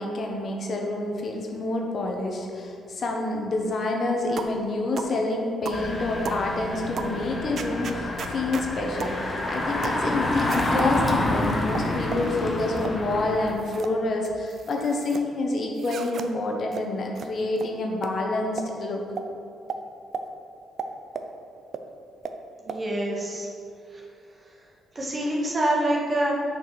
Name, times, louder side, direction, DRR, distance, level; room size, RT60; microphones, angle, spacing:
voice 1, 0.0-9.2 9.5-19.0, left 2 dB, 50° left, 1 dB, 1.2 m, -28 dB
sound 1, 4.4-4.6 5.0-5.2 5.7-5.9 6.2-6.4 7.0-7.2 7.6-8.7 9.0-9.2 9.8-10.0 10.5-10.9 11.5-12.3 12.8-13.0 13.5-13.9 14.2-15.2 15.8-16.3 16.7-16.8 17.2-17.3 17.6-17.7 18.0-18.1 18.6-18.7 19.2-19.3 19.7-19.8 20.1-20.3 20.8-21.3 21.7-21.8 22.2-22.4 22.7-22.8, right 5 dB, 55° right, 0.6 m, -34 dB
Engine, 5.7-13.5, left 1 dB, 25° left, 1.2 m, -28 dB
voice 2, 22.6-23.5 23.9-24.0 24.9-26.3, right 1 dB, 30° right, -3 dB, 1.8 m, -26 dB
6.3 x 5.3 x 6.9 m, 2.4 s
cardioid pair, 90°, 0 cm